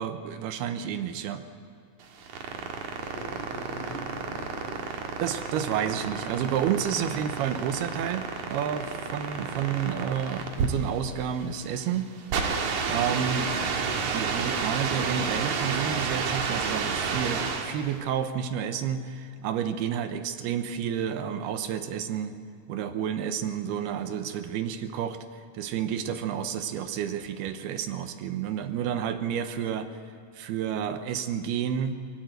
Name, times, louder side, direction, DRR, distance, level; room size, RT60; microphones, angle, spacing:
voice 1, 0.0-1.4 5.2-12.1 12.9-13.7 14.1-22.4 22.7-25.2 25.5-29.9 30.3-32.0, right 8 dB, 80° right, 8 dB, 3.0 m, -30 dB
sound 1, 2.0-17.9, right 5 dB, 60° right, 2.7 m, -31 dB
voice 2, 3.0-4.8, left 1 dB, 75° left, -2 dB, 7.3 m, -42 dB
24.5 x 16.5 x 7.9 m, 2.4 s
omnidirectional pair, 4.6 m